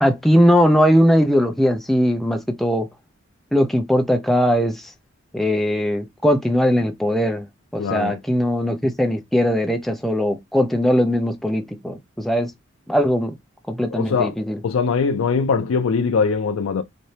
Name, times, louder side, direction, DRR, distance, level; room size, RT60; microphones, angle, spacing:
voice 1, 0.0-2.9 3.5-4.9 5.3-7.5 7.7-12.5 12.9-13.3 13.7-14.6, equal, ahead, 0.5 m, -19 dB
voice 2, 7.8-8.2 13.9-14.3 14.6-16.8, left 5 dB, 75° left, 0.4 m, -21 dB
4.2 x 2.7 x 3.2 m
head